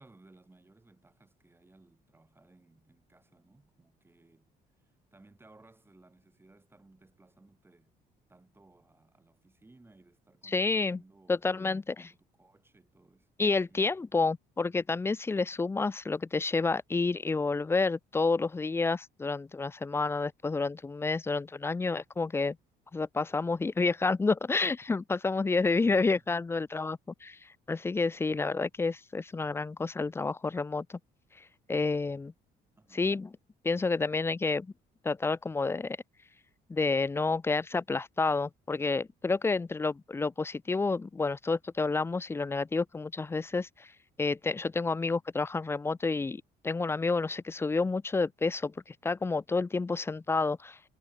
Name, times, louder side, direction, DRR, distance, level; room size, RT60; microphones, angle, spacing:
voice 1, 0.0-8.0 8.3-11.8 12.0-13.3 13.6-14.0 25.8-26.2 32.8-33.1, right 2 dB, 15° right, 4.5 m, -61 dB
voice 2, 10.4-11.0 11.3-12.1 13.4-22.6 22.9-31.0 31.4-32.3 32.9-33.3 33.6-34.7 35.0-36.0 36.7-43.9 44.2-50.9, left 3 dB, 15° left, 0.4 m, -29 dB
cardioid pair, 110°, 17 cm